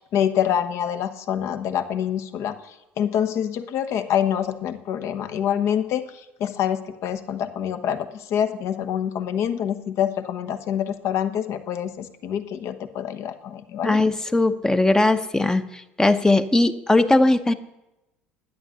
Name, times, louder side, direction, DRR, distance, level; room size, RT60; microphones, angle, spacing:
voice 1, 0.0-2.6 3.0-6.0 6.4-14.0, left 9 dB, 50° left, 9 dB, 1.0 m, -26 dB
voice 2, 13.8-15.6 16.0-17.5, left 2 dB, 10° left, 11 dB, 0.8 m, -19 dB
11.5 x 10.0 x 6.5 m, 0.95 s
figure-of-eight pair, 65°, 6 cm